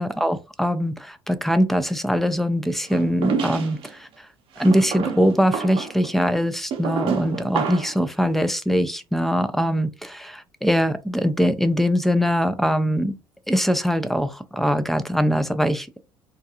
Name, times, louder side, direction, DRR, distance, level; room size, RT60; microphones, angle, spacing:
voice 1, 0.0-4.3 4.6-13.1 13.5-16.0, equal, ahead, 0.3 m, -22 dB
sound 1, 2.9-3.9 4.6-8.0, right 6 dB, 55° right, 0.6 m, -28 dB
2.3 x 2.2 x 2.7 m
hypercardioid pair, 70°, 11 cm